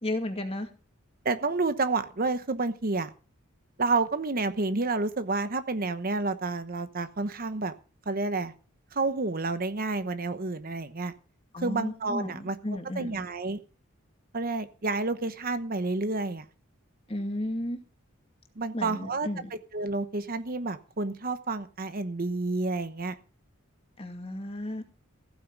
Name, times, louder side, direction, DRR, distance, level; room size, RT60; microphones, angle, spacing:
voice 1, 0.0-0.7 11.5-13.3 17.1-17.8 18.7-19.5 24.0-24.8, left 1 dB, 25° left, 5 dB, 2.3 m, -33 dB
voice 2, 1.2-3.1 3.8-7.7 8.1-8.5 8.9-11.1 11.6-12.6 13.0-13.6 14.3-16.4 18.6-19.3 19.7-23.1, right 3 dB, 45° right, 11 dB, 1.0 m, -29 dB
15.0 x 9.4 x 6.0 m, 0.36 s
head